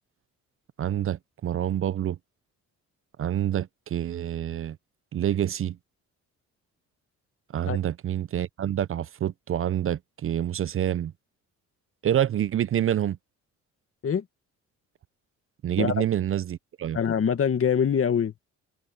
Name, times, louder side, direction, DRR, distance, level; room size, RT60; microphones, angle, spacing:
voice 1, 0.8-2.2 3.2-4.8 5.1-5.8 7.5-11.1 12.0-13.2 15.6-17.0, right 10 dB, 45° right, 0.6 m, -27 dB
voice 2, 16.9-18.5, left 7 dB, 50° left, 2.0 m, -24 dB
cardioid pair, 90°, 30 cm